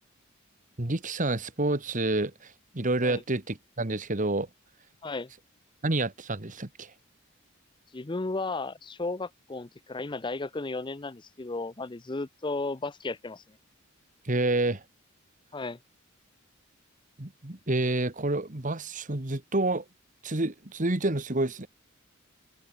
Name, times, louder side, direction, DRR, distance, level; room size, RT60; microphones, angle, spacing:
voice 1, 0.8-4.5 5.8-6.9 14.3-14.8 17.2-19.8 20.2-21.7, right 2 dB, 40° right, 1.7 m, -28 dB
voice 2, 7.9-13.4 15.5-15.8, left 3 dB, 20° left, 0.6 m, -34 dB
open air
head